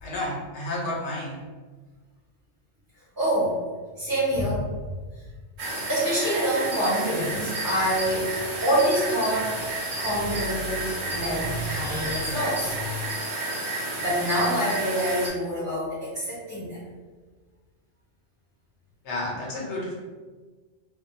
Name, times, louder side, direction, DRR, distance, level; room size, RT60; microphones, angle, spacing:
voice 1, 0.0-1.4 19.0-19.9, left 1 dB, 80° left, -2 dB, 0.9 m, -31 dB
voice 2, 3.2-3.6 4.0-4.7 5.9-8.3 8.6-9.6 10.0-12.8 14.0-16.8, equal, 15° right, -11 dB, 0.9 m, -26 dB
sound 1, 5.6-15.3, right 2 dB, 75° right, 1.0 m, -31 dB
2.3 x 2.2 x 2.6 m, 1.4 s
omnidirectional pair, 1.2 m